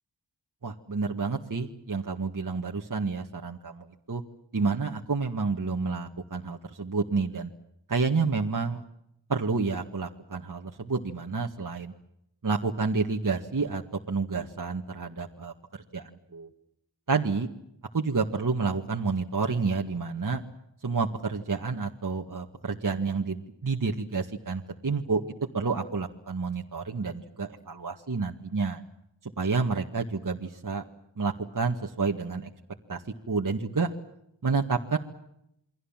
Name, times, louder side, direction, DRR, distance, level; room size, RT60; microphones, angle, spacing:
voice 1, 0.6-4.2 4.5-7.5 7.9-8.8 9.3-11.9 12.4-13.8 14.1-15.5 15.9-16.5 17.1-17.5 17.9-20.4 20.8-25.2 25.5-28.8 29.4-30.8 31.2-32.5 32.9-33.0 33.3-33.9 34.4-35.0, right 4 dB, 45° right, 1 dB, 2.0 m, -29 dB
29.0 x 22.5 x 7.5 m, 0.78 s
wide cardioid pair, 70°, 45 cm